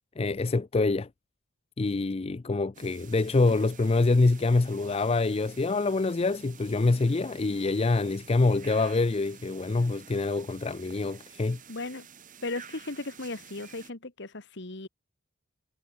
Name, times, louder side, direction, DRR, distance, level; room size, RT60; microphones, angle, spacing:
voice 1, 0.2-1.1 1.8-11.6, left 3 dB, 30° left, 0.4 m, -25 dB
sound 1, 2.7-13.9, right 7 dB, 40° right, 3.0 m, -51 dB
voice 2, 11.7-12.1 12.4-14.9, left 2 dB, 60° left, 1.8 m, -36 dB
head